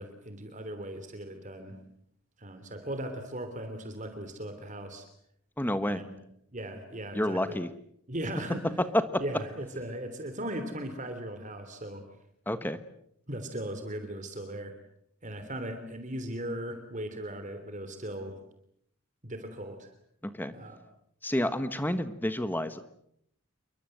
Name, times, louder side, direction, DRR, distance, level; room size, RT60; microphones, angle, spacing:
voice 1, 0.0-1.8 2.4-5.1 5.9-6.2 6.5-7.6 8.1-8.7 9.2-12.1 13.3-14.7 15.2-18.4 19.2-19.9 20.5-20.8, right 1 dB, 35° right, 8 dB, 3.2 m, -38 dB
voice 2, 5.6-6.0 7.1-7.7 8.9-9.2 12.5-12.8 20.2-20.6 21.2-22.8, left 1 dB, 10° left, 10 dB, 1.2 m, -29 dB
29.0 x 24.0 x 7.9 m, 0.72 s
head